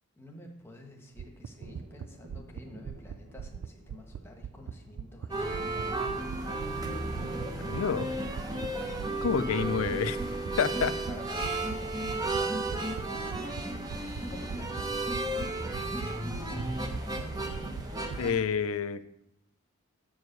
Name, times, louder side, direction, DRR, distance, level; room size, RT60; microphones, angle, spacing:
voice 1, 0.2-6.1 11.1-13.6 14.3-15.4, left 1 dB, 10° left, 1 dB, 1.1 m, -50 dB
sound 1, 0.6-11.0, right 2 dB, 50° right, 0.9 m, -51 dB
sound 2, 1.2-5.3 5.5-8.7 8.9-9.3 9.6-9.9 10.2-10.5 10.8-11.1 11.4-11.8 12.0-12.4 12.7-13.0 13.3-13.6 13.9-14.2 14.5-14.8 15.1-16.1 16.3-16.6 16.9-17.2 17.5-18.2, right 7 dB, 80° right, 0.3 m, -40 dB
sound 3, 5.3-18.3, right 2 dB, 15° right, 0.8 m, -33 dB
voice 2, 7.6-8.1 9.2-10.2 10.6-11.0 18.2-19.0, left 6 dB, 75° left, 13 dB, 0.5 m, -28 dB
8.0 x 4.7 x 6.6 m, 0.80 s
head